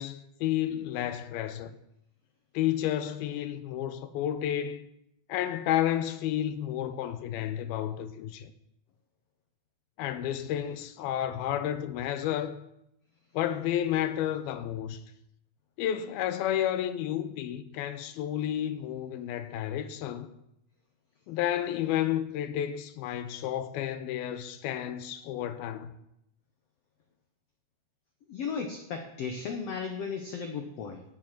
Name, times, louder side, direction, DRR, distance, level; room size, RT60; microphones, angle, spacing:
voice 1, 0.0-1.7 2.5-4.9 5.3-8.5 10.0-12.6 13.3-15.0 15.8-20.3 21.3-25.9, left 11 dB, 90° left, 2.6 m, -31 dB
voice 2, 28.3-31.0, left 5 dB, 75° left, 1.5 m, -35 dB
16.5 x 7.6 x 6.0 m
omnidirectional pair, 4.3 m